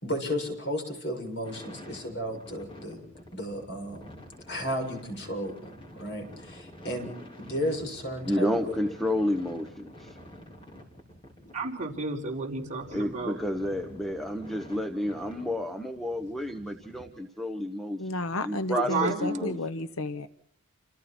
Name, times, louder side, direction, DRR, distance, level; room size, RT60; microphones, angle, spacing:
voice 1, 0.0-3.0 3.3-4.1 4.5-7.1 7.4-8.7 11.4-11.5, equal, 50° left, 3 dB, 7.0 m, -34 dB
sound 1, 1.4-17.0, equal, 25° left, 4.3 m, -49 dB
voice 2, 8.3-10.2 12.9-18.1 18.4-19.6, left 1 dB, ahead, 5 dB, 1.1 m, -30 dB
voice 3, 11.5-13.4 18.7-19.5, right 3 dB, 35° right, -1 dB, 4.6 m, -32 dB
voice 4, 18.0-20.3, left 2 dB, 70° left, 11 dB, 1.0 m, -32 dB
29.0 x 28.0 x 4.4 m, 0.74 s
head